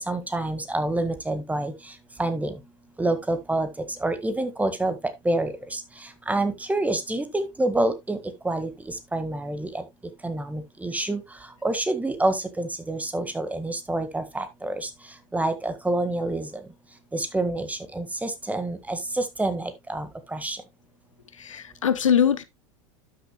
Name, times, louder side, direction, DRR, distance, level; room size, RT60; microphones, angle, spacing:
voice 1, 0.0-1.7 2.2-2.5 3.0-3.7 4.0-4.9 5.2-5.5 6.3-8.2 8.4-8.7 9.1-9.7 10.2-11.2 11.6-14.7 15.3-16.5 17.1-20.1 20.3-20.6, right 2 dB, 10° right, 1.5 m, -27 dB
voice 2, 21.4-22.4, left 8 dB, 90° left, 0.8 m, -22 dB
12.0 x 6.5 x 2.2 m
hypercardioid pair, 85°, 16 cm